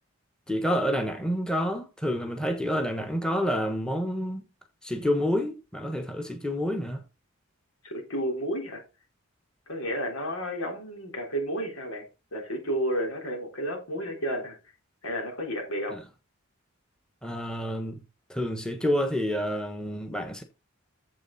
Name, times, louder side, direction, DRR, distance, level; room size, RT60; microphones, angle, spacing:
voice 1, 0.5-4.5 4.8-7.0 15.9-16.0 17.2-18.0 18.3-20.4, equal, 5° left, 1.1 m, -28 dB
voice 2, 7.8-8.8 9.7-14.6 15.0-16.0, equal, 85° left, 3.9 m, -32 dB
9.1 x 7.5 x 4.1 m
head